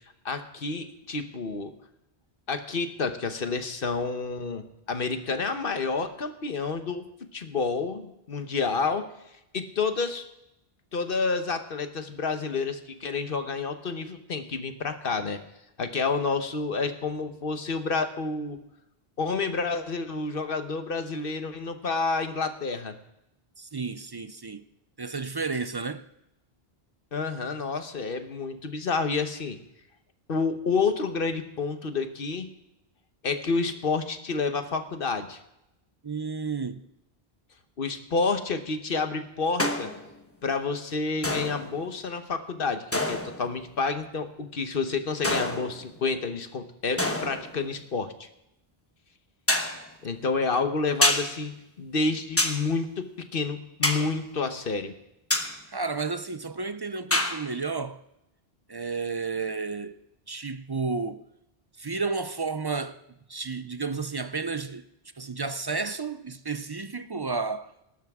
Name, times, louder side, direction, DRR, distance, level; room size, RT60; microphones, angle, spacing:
voice 1, 0.2-1.7 2.5-7.0 7.3-9.1 9.5-10.3 10.9-15.4 15.8-18.6 19.2-22.9 27.1-29.6 30.3-32.5 33.2-35.4 37.8-39.9 40.4-48.3 50.0-51.5 51.8-54.9, left 4 dB, 60° left, 1.2 m, -29 dB
voice 2, 23.6-24.6 25.0-26.0 36.0-36.8 55.7-58.0 58.7-60.0 60.3-61.2 61.8-63.0 63.3-64.8 65.2-67.7, right 4 dB, 35° right, 0.4 m, -32 dB
sound 1, 39.6-40.1 41.2-41.8 42.9-43.5 45.2-46.0 47.0-47.6 49.5-49.8 51.0-51.3 52.4-52.6 53.8-54.1 55.3-55.5 57.1-57.4, left 1 dB, 15° left, 1.1 m, -26 dB
18.5 x 12.5 x 3.6 m
omnidirectional pair, 1.0 m